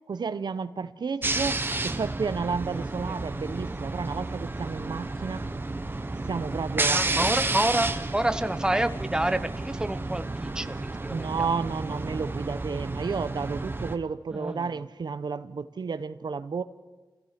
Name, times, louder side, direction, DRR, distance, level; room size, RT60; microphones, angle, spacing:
voice 1, 0.1-5.5 6.3-7.2 11.1-16.6, right 5 dB, 65° right, 12 dB, 0.8 m, -32 dB
sound 1, 1.2-13.9, right 2 dB, 25° right, 1.1 m, -31 dB
voice 2, 2.7-3.2 6.9-11.5 14.3-14.6, right 1 dB, 10° right, 10 dB, 0.8 m, -29 dB
28.5 x 16.0 x 5.8 m, 1.3 s
wide cardioid pair, 100°, 8 cm